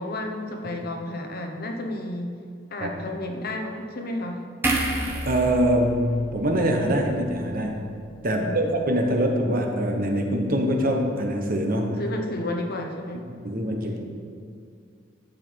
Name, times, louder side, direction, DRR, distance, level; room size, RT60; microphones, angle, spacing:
voice 1, 0.0-2.3 2.7-4.4 8.3-8.6 12.0-13.3, left 1 dB, 50° left, 3 dB, 1.0 m, -31 dB
sound 1, 4.6-8.0 8.3-8.5, right 1 dB, 10° right, 1.3 m, -31 dB
voice 2, 5.2-7.7 8.2-12.0 13.4-14.0, equal, 45° right, 2 dB, 1.2 m, -24 dB
12.0 x 7.7 x 4.7 m, 2.3 s
head